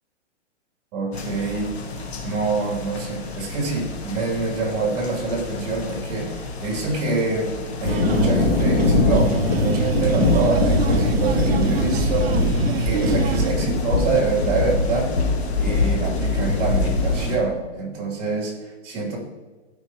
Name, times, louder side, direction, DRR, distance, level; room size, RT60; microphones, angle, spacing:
voice 1, 0.9-1.7 2.2-7.5 7.8-12.3 12.8-15.1 15.6-19.2, right 3 dB, 30° right, -2 dB, 2.7 m, -26 dB
sound 1, 1.1-17.4, left 3 dB, 60° left, 1.5 m, -23 dB
sound 2, 7.9-13.5, right 9 dB, 55° right, 0.5 m, -27 dB
13.0 x 5.2 x 2.9 m, 1.3 s
hypercardioid pair, 175°, 36 cm